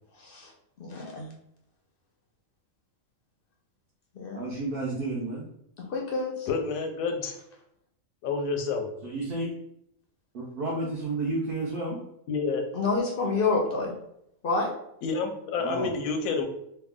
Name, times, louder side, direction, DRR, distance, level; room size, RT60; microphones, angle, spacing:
voice 1, 0.2-0.5 0.8-1.3 4.1-4.4 5.8-6.5 12.7-13.9 14.4-14.7, left 3 dB, 55° left, 0 dB, 0.6 m, -28 dB
voice 2, 4.3-5.4 9.0-9.5 10.3-12.0 15.6-15.9, right 2 dB, 50° right, -5 dB, 0.8 m, -31 dB
voice 3, 6.5-7.4 8.2-8.9 12.3-12.6 15.0-16.4, left 4 dB, 90° left, 5 dB, 1.0 m, -29 dB
3.2 x 2.3 x 3.5 m, 0.77 s
omnidirectional pair, 1.4 m